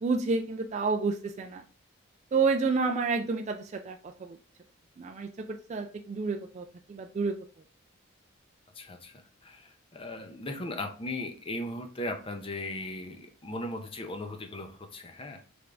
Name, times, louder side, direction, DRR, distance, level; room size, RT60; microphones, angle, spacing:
voice 1, 0.0-1.6 2.3-4.0 4.3-4.4 5.0-7.3, right 4 dB, 35° right, 4 dB, 0.3 m, -29 dB
voice 2, 8.7-15.4, left 1 dB, 25° left, 5 dB, 0.6 m, -38 dB
3.8 x 3.4 x 3.3 m, 0.40 s
head